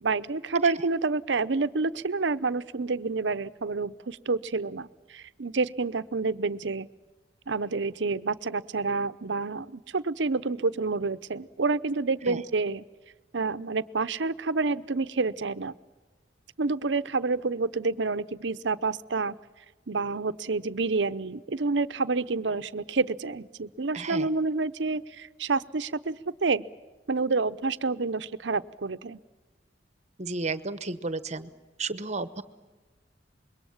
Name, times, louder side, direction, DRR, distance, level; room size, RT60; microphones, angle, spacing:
voice 1, 0.0-6.9 7.5-12.9 13.3-15.7 16.6-19.4 19.9-26.6 27.1-29.2, right 3 dB, 75° right, 14 dB, 0.8 m, -28 dB
voice 2, 23.9-24.3 30.2-31.5 31.8-32.4, right 3 dB, 40° right, 14 dB, 1.1 m, -32 dB
26.0 x 22.5 x 7.2 m, 1.3 s
head